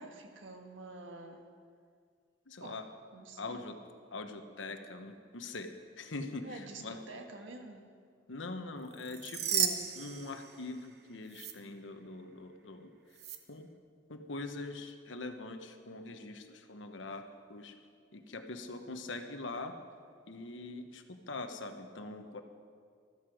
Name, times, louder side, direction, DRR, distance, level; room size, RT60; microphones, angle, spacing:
voice 1, 0.0-1.4 2.6-2.8 3.1-3.7 6.4-7.9, right 2 dB, 90° right, 3 dB, 1.6 m, -48 dB
voice 2, 2.5-2.9 3.4-3.8 4.1-7.0 8.3-13.2 13.5-13.7 14.1-17.7 18.1-19.8 20.3-22.4, left 2 dB, 80° left, 6 dB, 1.1 m, -43 dB
sound 1, 8.9-10.9 11.3-11.5 13.2-13.4, right 8 dB, 55° right, 0.9 m, -34 dB
14.0 x 13.0 x 4.9 m, 2.1 s
head